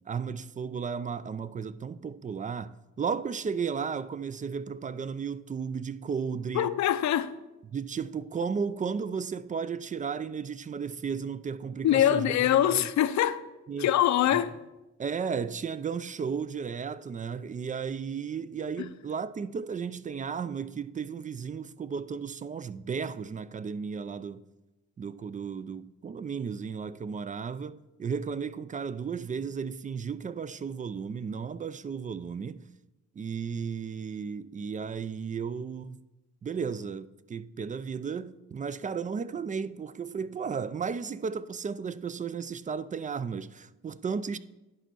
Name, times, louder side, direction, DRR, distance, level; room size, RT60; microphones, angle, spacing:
voice 1, 0.1-6.7 7.7-12.9 13.7-13.9 14.3-14.4 15.0-24.4 25.0-32.7 33.2-36.1 36.4-44.4, right 6 dB, 25° right, 0.3 m, -34 dB
voice 2, 6.5-7.3 11.8-13.4 13.8-14.6, left 11 dB, 65° left, 0.6 m, -24 dB
10.5 x 4.4 x 6.1 m
cardioid pair, 90°, 30 cm